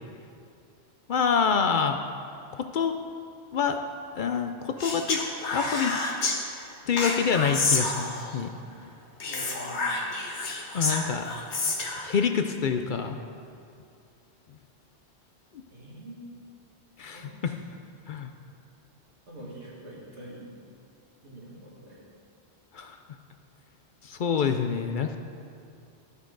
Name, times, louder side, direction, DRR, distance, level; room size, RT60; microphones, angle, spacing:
voice 1, 1.1-2.0 2.5-3.0 3.5-3.8 4.1-5.2 5.5-6.0 6.9-8.5 10.7-11.3 12.0-13.2 17.0-17.5 18.1-18.3 22.7-23.0 24.0-25.2, left 6 dB, 55° left, 6 dB, 0.6 m, -26 dB
Speech, 4.8-6.4 7.0-8.4 9.2-12.1, left 3 dB, 90° left, 1.4 m, -29 dB
voice 2, 9.3-10.2 15.7-16.3 17.1-17.5 19.3-20.6 21.2-22.1, right 1 dB, 90° right, -5 dB, 2.4 m, -45 dB
12.0 x 8.1 x 3.9 m, 2.5 s
omnidirectional pair, 1.1 m